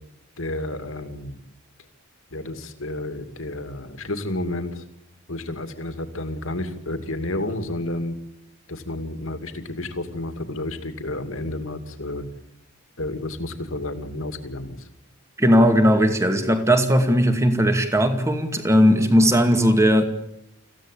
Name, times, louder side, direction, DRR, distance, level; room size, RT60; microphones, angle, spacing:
voice 1, 0.4-1.4 2.3-4.9 5.3-8.2 8.7-12.2 13.0-14.9, left 1 dB, 65° left, 8 dB, 2.6 m, -31 dB
voice 2, 15.4-20.0, equal, 15° right, 7 dB, 2.3 m, -18 dB
26.5 x 16.0 x 8.5 m, 0.87 s
head